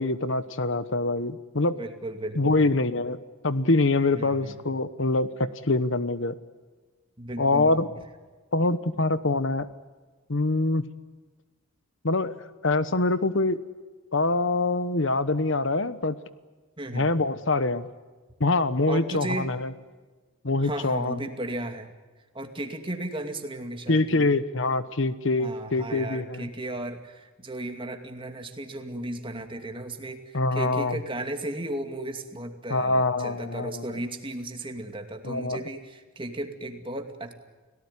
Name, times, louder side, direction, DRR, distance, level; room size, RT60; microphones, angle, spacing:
voice 1, 0.0-1.8 2.4-3.2 3.4-6.3 7.4-7.9 8.5-9.7 10.3-10.8 12.0-13.6 14.1-16.2 16.9-17.9 18.4-19.7 20.4-21.3 23.9-26.5 30.3-31.0 32.7-33.8 35.2-35.6, left 2 dB, 65° left, 13 dB, 1.1 m, -25 dB
voice 2, 1.8-2.7 4.1-4.6 7.2-7.7 16.8-17.1 18.9-19.5 20.6-21.9 22.3-24.3 25.4-37.3, right 1 dB, 25° right, 5 dB, 2.5 m, -35 dB
30.0 x 18.0 x 9.8 m, 1.3 s
head